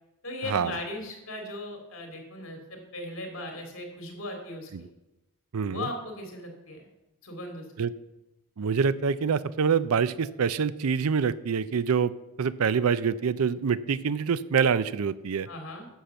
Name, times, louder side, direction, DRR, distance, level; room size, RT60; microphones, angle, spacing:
voice 1, 0.2-4.9 5.7-6.9 7.2-7.6 15.5-15.9, left 1 dB, 65° left, 3 dB, 2.6 m, -38 dB
voice 2, 5.5-5.9 7.8-7.9 8.6-12.1 12.4-15.5, right 6 dB, 90° right, 17 dB, 0.5 m, -26 dB
10.0 x 5.9 x 6.9 m, 0.99 s
head